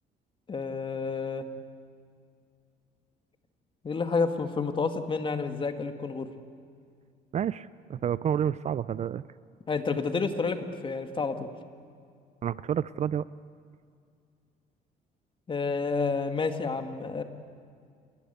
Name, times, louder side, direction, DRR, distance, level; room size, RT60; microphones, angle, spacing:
voice 1, 0.5-1.5 3.8-6.3 9.7-11.5 15.5-17.2, left 4 dB, 30° left, 7 dB, 2.1 m, -29 dB
voice 2, 7.3-9.2 12.4-13.3, right 9 dB, 40° right, 17 dB, 0.5 m, -29 dB
27.0 x 21.5 x 8.2 m, 2.2 s
cardioid pair, 110°, 17 cm